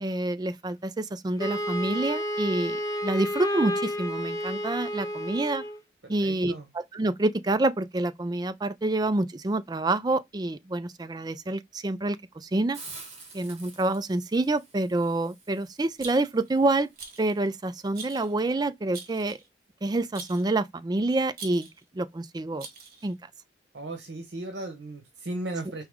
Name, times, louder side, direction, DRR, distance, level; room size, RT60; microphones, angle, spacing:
voice 1, 0.0-5.6 6.1-12.8 13.3-16.9 17.2-19.4 19.8-21.7 21.9-22.7 23.0-23.2, right 2 dB, 25° right, 0.4 m, -27 dB
Wind instrument woodwind instrument, 1.4-5.8, equal, 20° left, 0.6 m, -31 dB
voice 2, 6.0-6.7 23.7-25.8, right 2 dB, 75° right, 1.0 m, -36 dB
Hiss, 12.7-18.4, right 4 dB, 40° right, 1.8 m, -49 dB
Rattle, 16.0-16.5 17.0-17.3 17.9-18.3 18.9-19.5 20.1-20.5 21.3-21.8 22.6-23.1, right 5 dB, 55° right, 1.4 m, -43 dB
4.8 x 3.0 x 3.5 m
head